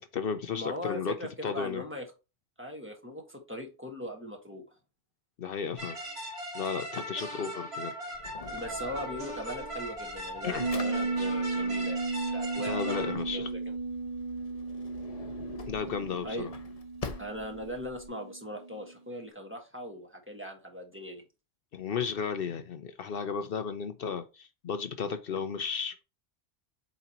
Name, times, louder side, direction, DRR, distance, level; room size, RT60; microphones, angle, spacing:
voice 1, 0.0-1.1 1.4-1.8 5.4-6.0 6.5-7.9 10.4-10.7 12.7-13.5 15.7-16.5 21.7-26.0, left 6 dB, 65° left, 0.8 m, -34 dB
voice 2, 0.5-2.0 2.6-4.6 8.5-13.7 16.2-16.5 17.2-21.2, equal, 10° right, 1.5 m, -40 dB
sound 1, 5.8-13.2, equal, 85° right, 2.1 m, -39 dB
Drawer open or close, 8.1-18.1, left 4 dB, 40° left, 0.8 m, -46 dB
sound 2, 10.6-18.9 19.2-19.3, right 3 dB, 45° right, 0.7 m, -34 dB
7.9 x 4.2 x 2.9 m
omnidirectional pair, 1.0 m